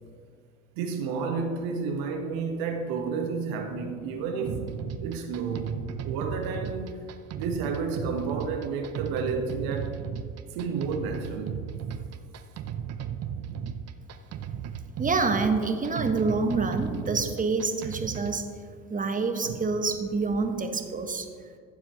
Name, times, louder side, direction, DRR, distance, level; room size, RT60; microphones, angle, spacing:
voice 1, 0.8-5.8 6.0-7.0 7.3-9.9 10.5-11.6 19.4-19.5, right 5 dB, 65° right, 4 dB, 1.5 m, -31 dB
sound 1, 4.5-18.4, right 8 dB, 40° right, 0.7 m, -35 dB
voice 2, 15.0-18.4 18.9-21.3, right 4 dB, 20° right, 6 dB, 1.2 m, -27 dB
15.0 x 7.2 x 3.2 m, 2.1 s
hypercardioid pair, 70°, 38 cm